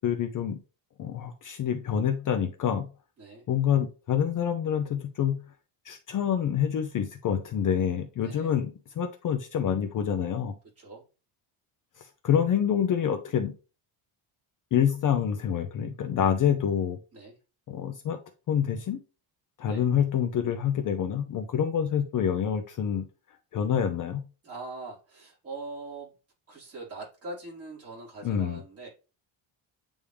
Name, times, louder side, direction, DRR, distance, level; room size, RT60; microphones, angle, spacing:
voice 1, 0.0-0.6 1.0-2.9 3.5-5.4 5.8-10.5 12.0-13.5 14.7-17.0 17.7-18.2 18.5-19.0 19.6-24.2 28.2-28.6, left 8 dB, 40° left, 6 dB, 0.6 m, -27 dB
voice 2, 8.2-8.5 10.8-11.1 17.1-17.4 19.7-19.8 24.4-26.1 26.5-28.9, right 3 dB, 30° right, -7 dB, 3.7 m, -42 dB
8.4 x 3.6 x 3.3 m, 0.33 s
cardioid pair, 165°, 49 cm